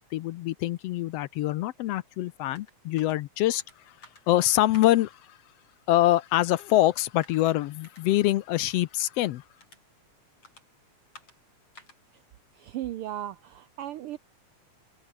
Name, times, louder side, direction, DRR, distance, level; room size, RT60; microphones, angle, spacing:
voice 1, 0.0-3.9 4.3-5.4 5.9-9.4, left 15 dB, 75° left, 1.5 m, -25 dB
sound 1, 1.9-13.6, left 3 dB, 50° left, 8.8 m, -58 dB
voice 2, 12.6-14.2, right 13 dB, 85° right, 1.2 m, -36 dB
omnidirectional pair, 3.4 m